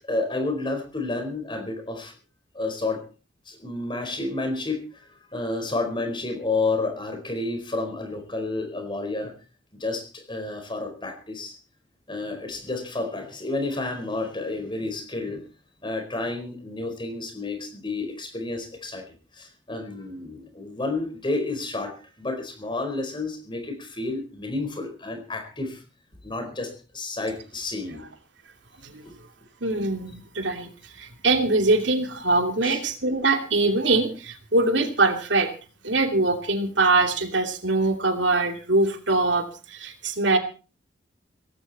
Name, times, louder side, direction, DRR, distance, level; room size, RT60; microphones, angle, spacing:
voice 1, 0.0-2.1 2.5-3.0 3.5-4.8 5.1-9.3 9.8-11.6 12.1-15.4 15.8-19.0 19.4-25.8 26.2-28.0 32.6-32.8, left 2 dB, 25° left, 5 dB, 4.6 m, -30 dB
voice 2, 29.6-30.7 31.0-35.5 35.8-40.4, right 2 dB, 70° right, 5 dB, 2.8 m, -23 dB
17.5 x 15.5 x 4.3 m, 0.36 s
head